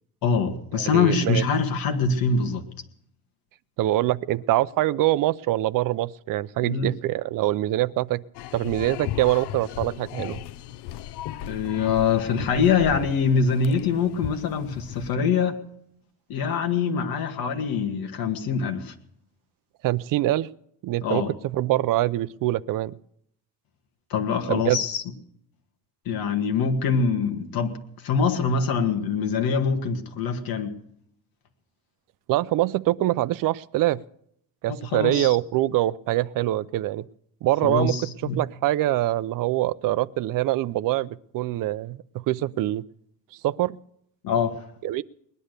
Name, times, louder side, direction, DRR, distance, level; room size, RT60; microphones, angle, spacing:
voice 1, 0.2-2.7 6.6-6.9 11.5-15.6 16.3-18.9 21.0-21.3 24.1-25.0 26.1-30.7 34.7-35.4 37.6-38.4 44.2-44.5, left 5 dB, 65° left, 5 dB, 1.9 m, -24 dB
voice 2, 0.7-1.4 3.8-8.2 8.5-10.4 19.8-20.5 20.8-21.2 21.5-22.9 24.5-24.8 32.3-34.0 34.6-37.0 37.4-37.9 38.4-42.8 43.4-43.8 44.8-45.0, right 15 dB, 55° right, 15 dB, 0.6 m, -24 dB
sound 1, 8.3-15.1, left 12 dB, 90° left, 0.7 m, -36 dB
20.0 x 11.0 x 6.6 m, 0.71 s
cardioid pair, 155°, 39 cm